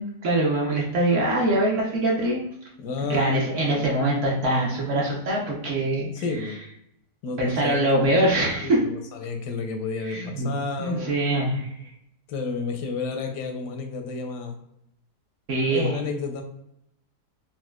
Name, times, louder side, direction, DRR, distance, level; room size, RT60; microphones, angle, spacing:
voice 1, 0.0-2.4 3.0-6.1 7.4-8.8 10.1-10.5 10.8-11.7 15.5-15.9, right 1 dB, 60° right, -2 dB, 0.9 m, -23 dB
voice 2, 2.8-3.9 6.1-6.6 7.2-8.4 8.6-11.1 12.3-14.6 15.7-16.4, left 4 dB, 85° left, 4 dB, 1.2 m, -31 dB
4.2 x 2.3 x 2.2 m, 0.78 s
omnidirectional pair, 1.8 m